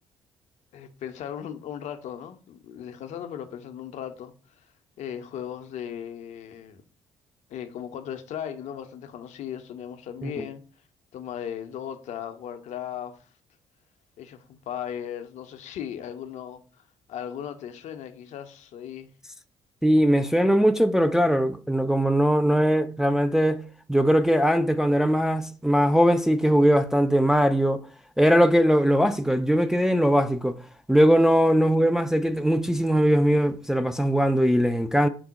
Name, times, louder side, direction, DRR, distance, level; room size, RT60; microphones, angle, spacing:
voice 1, 0.7-4.3 5.0-6.8 7.5-10.6 11.1-13.3 14.2-16.6 17.1-19.1, left 9 dB, 55° left, 0.5 m, -37 dB
voice 2, 19.8-23.6 23.9-27.8 28.2-30.6 30.9-35.1, equal, 5° right, 0.3 m, -20 dB
4.5 x 2.0 x 4.0 m
figure-of-eight pair, 45°, 14 cm